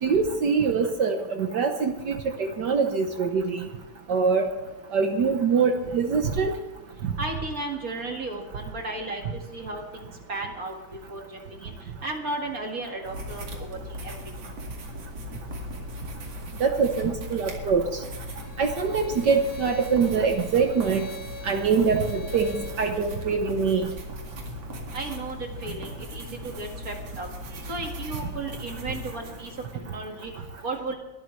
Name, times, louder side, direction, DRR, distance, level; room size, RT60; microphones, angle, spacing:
voice 1, 0.0-3.7 4.1-4.5 4.9-6.5 7.0-7.1 16.6-17.9 18.6-21.1 21.4-23.9, right 5 dB, 80° right, 5 dB, 0.9 m, -24 dB
voice 2, 7.2-10.8 11.1-11.7 12.0-14.2 24.9-27.3 27.7-30.3 30.6-30.9, right 2 dB, 35° right, 2 dB, 1.9 m, -34 dB
sound 1, 13.0-29.7, equal, 60° right, 3.2 m, -38 dB
Bowed string instrument, 18.3-22.8, left 1 dB, 60° left, 6.6 m, -44 dB
22.0 x 12.5 x 3.2 m, 1.1 s
omnidirectional pair, 3.3 m